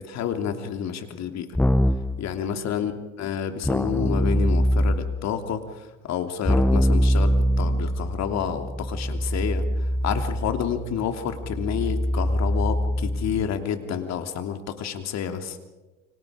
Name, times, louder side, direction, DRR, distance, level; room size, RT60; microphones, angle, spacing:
voice 1, 0.1-1.5 2.2-2.9 3.2-15.6, left 8 dB, 45° left, 6 dB, 3.0 m, -29 dB
Keyboard (musical), 1.5-2.2 3.6-5.2 6.4-13.5, equal, 5° left, 0.8 m, -23 dB
30.0 x 25.0 x 5.0 m, 1.1 s
hypercardioid pair, 75°, 36 cm